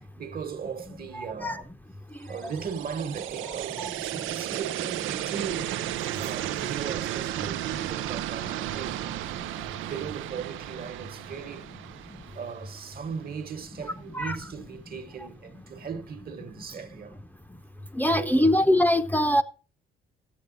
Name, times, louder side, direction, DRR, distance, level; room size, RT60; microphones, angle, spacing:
voice 1, 0.2-1.7 2.3-5.9 6.2-9.4 9.8-11.7 12.0-17.2 18.0-18.5, right 6 dB, 50° right, 1.3 m, -38 dB
sound 1, 2.3-13.3, right 13 dB, 85° right, 0.5 m, -34 dB
voice 2, 18.0-19.4, left 1 dB, 10° left, 0.7 m, -22 dB
13.0 x 8.3 x 3.9 m
cardioid pair, 90°, 20 cm